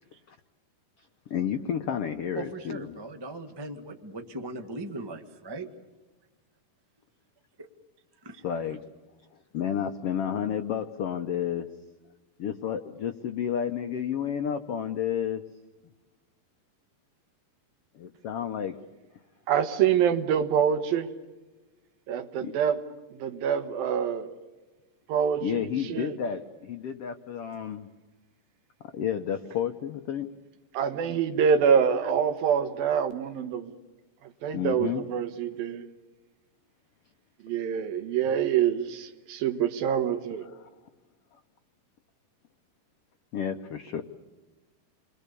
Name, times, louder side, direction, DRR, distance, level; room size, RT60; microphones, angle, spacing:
voice 1, 1.3-3.0 8.4-8.8 9.5-11.7 12.4-15.4 17.9-18.8 22.4-22.5 25.4-27.9 28.9-30.3 34.5-35.1 40.4-40.7 41.3-41.4 43.3-44.0, left 8 dB, 80° left, 7 dB, 1.3 m, -31 dB
voice 2, 2.3-5.7 8.2-8.4, right 2 dB, 40° right, 5 dB, 0.3 m, -39 dB
voice 3, 19.5-21.1 22.1-22.8 23.2-24.4 25.1-26.1 30.7-33.7 34.4-35.9 37.4-40.5, right 8 dB, 85° right, 8 dB, 3.2 m, -26 dB
29.5 x 22.0 x 6.9 m, 1.2 s
omnidirectional pair, 4.1 m